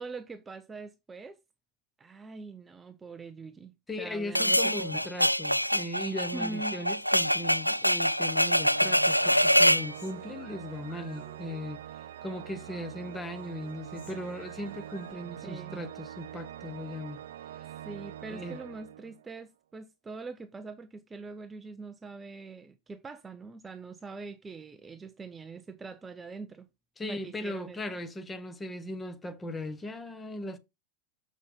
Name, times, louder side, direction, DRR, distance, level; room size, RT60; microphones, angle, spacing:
voice 1, 0.0-1.4 2.0-5.1 6.3-6.8 15.4-15.8 17.8-26.7 27.0-27.8, right 4 dB, 15° right, 0.7 m, -43 dB
voice 2, 3.9-11.8 12.2-17.2 18.3-18.6 27.0-30.6, left 1 dB, 15° left, 1.3 m, -38 dB
sound 1, 4.4-9.9, equal, 90° left, 0.3 m, -25 dB
Human voice, 7.1-8.3 8.7-11.9 12.1-12.9 13.1-15.1, left 2 dB, 70° left, 4.3 m, -56 dB
Organ, 8.5-19.4, right 11 dB, 60° right, 0.5 m, -44 dB
7.3 x 6.4 x 3.6 m
figure-of-eight pair, 90°, 0 cm